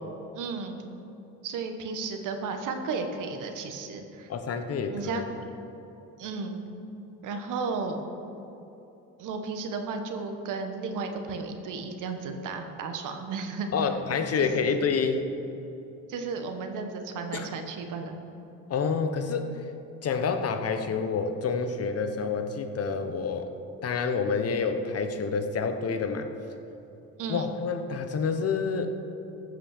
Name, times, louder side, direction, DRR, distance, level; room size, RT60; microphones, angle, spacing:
voice 1, 0.3-0.8 1.4-4.3 4.9-5.3 6.2-6.6 7.2-8.0 9.2-13.8 14.4-14.5 16.1-18.2 27.2-27.5, right 4 dB, 70° right, 6 dB, 1.4 m, -34 dB
voice 2, 4.3-5.3 13.7-15.2 17.3-17.5 18.7-19.5 20.0-23.5 23.8-26.3 27.3-28.9, left 5 dB, 45° left, 7 dB, 1.1 m, -28 dB
14.5 x 5.9 x 6.6 m, 2.9 s
supercardioid pair, 90°, 32 cm